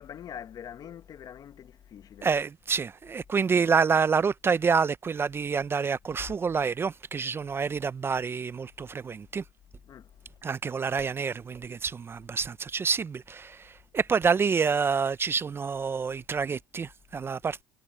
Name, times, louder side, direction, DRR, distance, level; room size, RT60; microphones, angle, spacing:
voice 1, 0.0-2.3 9.9-10.1, left 9 dB, 50° left, 1.1 m, -44 dB
voice 2, 2.2-9.4 10.4-17.6, right 5 dB, 25° right, 0.4 m, -27 dB
cardioid pair, 105°, 9 cm